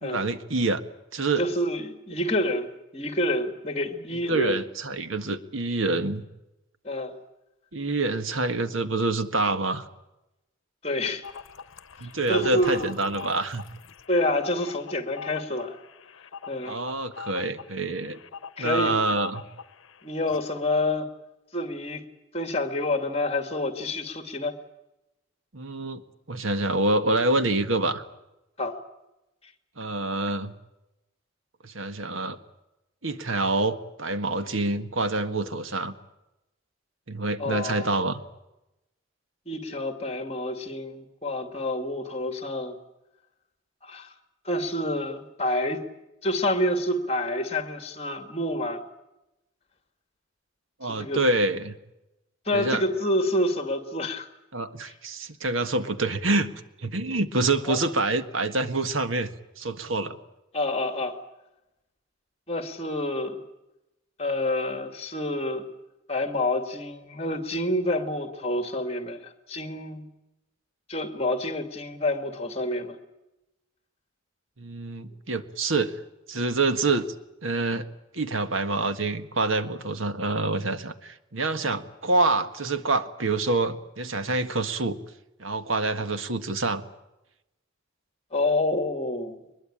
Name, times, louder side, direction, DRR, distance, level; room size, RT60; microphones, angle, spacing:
voice 1, 0.0-0.8 1.1-1.5 4.3-6.2 7.7-9.9 12.0-13.6 16.6-18.2 18.6-19.4 25.5-26.0 26.3-28.0 29.8-30.5 31.6-32.4 33.0-35.9 37.1-38.2 50.8-51.7 52.5-52.8 54.5-56.5 56.8-60.2 74.6-75.9 76.3-77.1 77.4-77.9 78.1-85.0 85.4-86.8, right 2 dB, 85° right, 10 dB, 1.7 m, -26 dB
voice 2, 1.4-4.6 6.8-7.1 10.8-11.2 12.3-12.9 14.1-15.8 16.5-16.8 18.6-19.0 20.0-21.1 21.5-22.0 22.3-24.5 28.6-28.8 37.4-37.9 39.5-42.8 43.8-44.1 44.4-45.8 46.2-48.8 50.9-51.2 52.5-54.3 57.6-57.8 60.5-61.2 62.5-63.4 64.2-65.7 66.1-70.1 70.9-73.0 88.3-89.4, left 1 dB, 30° left, 8 dB, 2.4 m, -28 dB
sound 1, 11.2-19.9 20.3-20.4, left 6 dB, 85° left, 0.9 m, -42 dB
23.0 x 21.5 x 8.9 m, 0.94 s
head